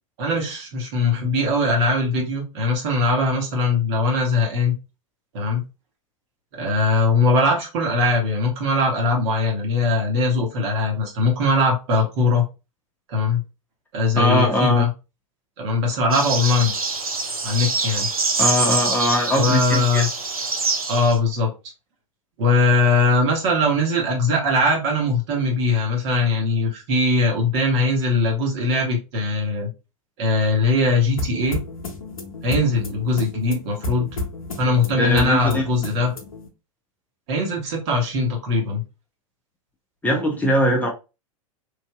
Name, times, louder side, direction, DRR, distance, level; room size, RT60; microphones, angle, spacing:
voice 1, 0.2-4.7 5.3-5.6 6.5-12.5 13.1-13.4 13.9-14.9 15.6-16.7 17.4-18.1 19.4-20.1 20.9-21.5 22.4-29.7 30.2-31.6 32.4-34.1 34.6-36.1 37.3-38.8, left 2 dB, 50° right, 0 dB, 1.3 m, -21 dB
voice 2, 14.2-14.9 18.4-20.0 35.0-35.7 40.0-40.9, left 1 dB, 10° left, -1 dB, 0.6 m, -21 dB
sound 1, 16.1-21.2, right 3 dB, 85° right, 0.6 m, -25 dB
sound 2, 31.2-36.5, left 3 dB, 75° left, 0.7 m, -32 dB
3.3 x 2.6 x 2.2 m, 0.28 s
figure-of-eight pair, 95°, 18 cm